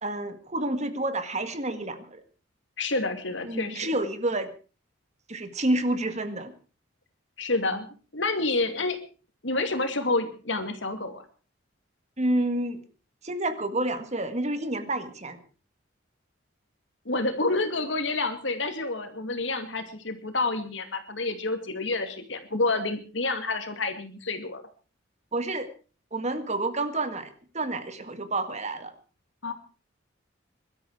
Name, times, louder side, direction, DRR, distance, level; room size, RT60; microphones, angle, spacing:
voice 1, 0.0-2.2 3.5-4.5 5.3-6.5 12.2-12.8 13.2-15.4 25.3-25.7 26.1-28.9, right 2 dB, 35° right, 9 dB, 1.8 m, -29 dB
voice 2, 2.8-3.9 7.4-7.9 8.1-9.0 9.4-11.2 17.0-24.6 29.4-29.5, left 3 dB, 70° left, 8 dB, 2.6 m, -28 dB
22.0 x 12.5 x 4.8 m, 0.37 s
head